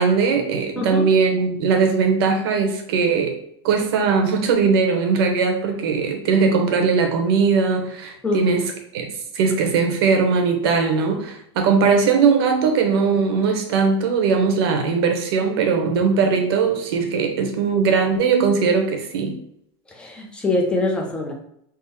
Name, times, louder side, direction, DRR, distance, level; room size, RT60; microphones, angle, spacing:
voice 1, 0.0-3.4 3.6-8.6 8.9-9.1 9.3-19.3, right 5 dB, 60° right, 4 dB, 0.8 m, -19 dB
voice 2, 19.9-21.3, left 2 dB, 5° left, 0 dB, 0.5 m, -23 dB
3.6 x 2.0 x 4.3 m, 0.74 s
supercardioid pair, 160°, 14 cm